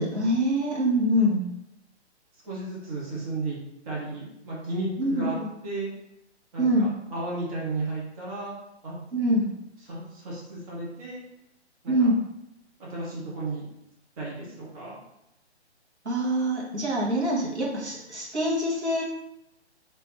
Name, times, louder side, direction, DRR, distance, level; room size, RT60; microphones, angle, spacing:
voice 1, 0.0-1.5 5.0-5.5 6.6-6.9 9.1-9.5 11.9-12.2 16.0-19.0, equal, 75° right, -4 dB, 1.4 m, -24 dB
voice 2, 2.4-3.6 3.8-5.3 5.6-5.9 6.5-8.5 8.8-9.0 9.9-11.2 11.8-12.1 12.9-13.7 14.2-15.0, right 2 dB, 30° right, -6 dB, 1.2 m, -33 dB
3.4 x 3.0 x 3.2 m, 0.84 s
figure-of-eight pair, 130°, 34 cm